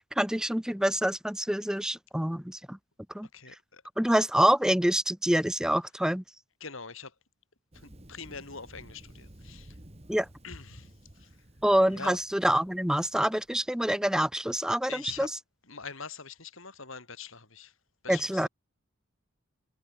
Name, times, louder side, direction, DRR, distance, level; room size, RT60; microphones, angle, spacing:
voice 1, 0.0-2.8 3.1-3.3 4.0-6.2 10.1-10.3 11.6-15.3 18.1-18.5, equal, 5° right, 0.6 m, -26 dB
voice 2, 3.3-3.8 6.6-7.1 7.7-9.8 10.4-11.4 11.9-12.2 14.9-15.3 15.7-17.7 18.0-18.5, left 5 dB, 65° left, 4.0 m, -43 dB
Thunder, 7.7-13.6, right 1 dB, 30° right, 1.9 m, -53 dB
head